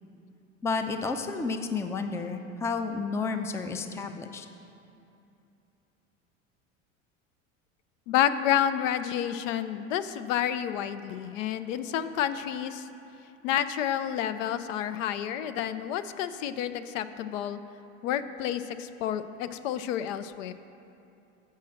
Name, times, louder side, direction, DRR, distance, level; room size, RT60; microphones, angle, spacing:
voice 1, 0.6-4.5, left 4 dB, 5° left, 7 dB, 0.4 m, -31 dB
voice 2, 8.1-12.9 13.4-17.6 18.0-20.5, left 10 dB, 75° left, 11 dB, 0.5 m, -29 dB
7.6 x 5.5 x 6.3 m, 2.7 s
hypercardioid pair, 80°, 39 cm